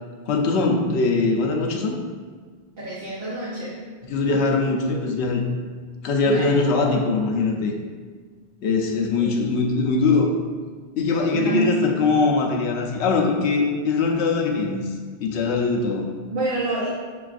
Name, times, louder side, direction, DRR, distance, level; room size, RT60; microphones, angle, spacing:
voice 1, 0.3-2.0 4.0-5.4 6.0-7.7 8.6-10.3 11.0-14.8 15.2-16.1, left 3 dB, 85° left, 1 dB, 0.9 m, -21 dB
voice 2, 2.8-3.8 6.2-6.6 9.2-9.6 11.3-11.7 15.4-15.5 16.3-16.9, right 2 dB, 60° right, -7 dB, 0.9 m, -28 dB
6.7 x 2.3 x 2.4 m, 1.5 s
omnidirectional pair, 1.1 m